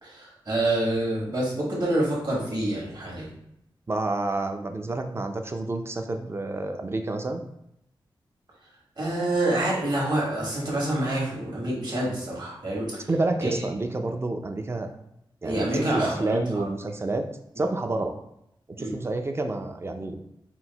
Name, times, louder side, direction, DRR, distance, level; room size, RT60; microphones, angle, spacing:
voice 1, 0.0-3.3 9.0-13.1 13.4-13.6 15.4-16.7 18.8-18.9, right 1 dB, 55° right, -4 dB, 1.5 m, -27 dB
voice 2, 3.9-7.4 13.1-14.9 15.4-17.3 17.6-18.2 18.7-20.2, right 2 dB, 30° right, 6 dB, 0.4 m, -29 dB
4.4 x 2.0 x 4.0 m, 0.79 s
wide cardioid pair, 115°, 9 cm